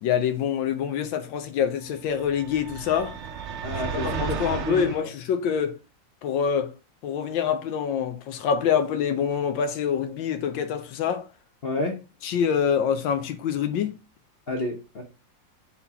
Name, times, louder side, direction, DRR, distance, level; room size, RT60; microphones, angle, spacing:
voice 1, 0.0-3.2 4.0-5.8 6.2-6.7 7.0-11.3 12.2-13.9, left 7 dB, 85° left, 1.4 m, -25 dB
sound 1, 2.1-5.0, right 7 dB, 75° right, 0.6 m, -33 dB
voice 2, 3.6-5.1 11.6-12.0 14.5-15.0, left 2 dB, 50° left, 0.7 m, -30 dB
4.3 x 4.3 x 5.5 m
omnidirectional pair, 2.0 m